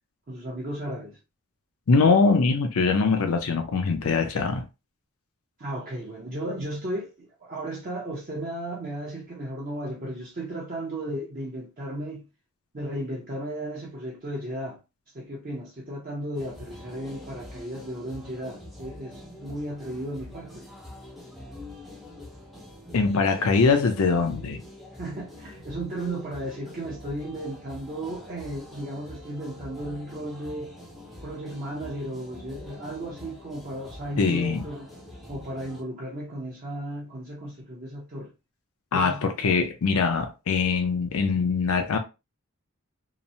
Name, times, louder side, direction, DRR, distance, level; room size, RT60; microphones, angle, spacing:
voice 1, 0.3-1.2 5.6-12.3 12.7-14.8 15.1-20.8 25.0-30.7 31.2-34.9 35.3-38.3 38.9-39.5, right 1 dB, 40° right, 0.6 m, -35 dB
voice 2, 1.9-4.7 22.9-24.6 34.2-34.7 38.9-42.0, left 4 dB, 85° left, 0.5 m, -22 dB
sound 1, 16.3-35.8, left 1 dB, ahead, 0.5 m, -45 dB
2.9 x 2.0 x 2.6 m
head